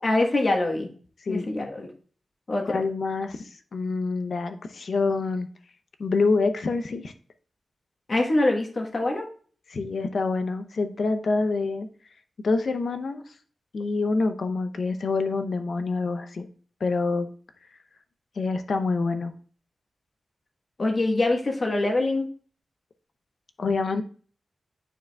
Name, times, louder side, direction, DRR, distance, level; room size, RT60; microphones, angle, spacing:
voice 1, 0.0-0.9 1.3-1.9 2.5-2.8 8.1-9.3 20.8-22.3, left 2 dB, 45° left, 1 dB, 1.2 m, -24 dB
voice 2, 2.6-5.5 6.0-7.1 9.7-11.9 12.4-13.2 13.7-16.5 16.8-17.3 18.4-19.3 23.6-24.0, left 3 dB, 65° left, 8 dB, 0.6 m, -26 dB
9.0 x 4.8 x 2.3 m, 0.43 s
wide cardioid pair, 100°, 0 cm